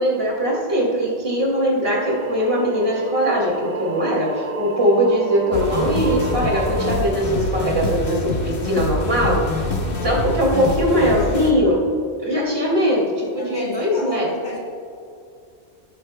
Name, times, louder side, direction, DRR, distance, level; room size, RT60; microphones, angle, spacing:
voice 1, 0.0-9.4 10.0-11.8 12.2-14.3, equal, 55° right, -4 dB, 2.8 m, -20 dB
sound 1, 1.8-7.0, right 3 dB, 40° right, 0.7 m, -31 dB
sound 2, 5.5-11.5, left 2 dB, 55° left, 1.3 m, -25 dB
voice 2, 9.8-10.5 13.4-14.6, left 1 dB, 80° left, -4 dB, 3.3 m, -32 dB
19.0 x 8.9 x 2.2 m, 2.4 s
omnidirectional pair, 1.2 m